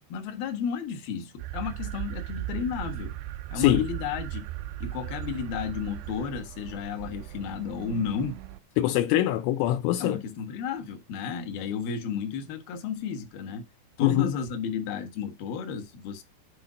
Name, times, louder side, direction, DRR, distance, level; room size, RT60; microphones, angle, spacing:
voice 1, 0.1-3.1 3.5-4.5 4.8-8.4 10.0-13.7 14.0-16.2, left 6 dB, 60° left, 3.0 m, -33 dB
sound 1, 1.4-8.6, right 14 dB, 80° right, 2.4 m, -37 dB
voice 2, 8.8-10.2 14.0-14.3, left 14 dB, 85° left, 3.1 m, -23 dB
9.9 x 3.7 x 5.1 m
omnidirectional pair, 5.5 m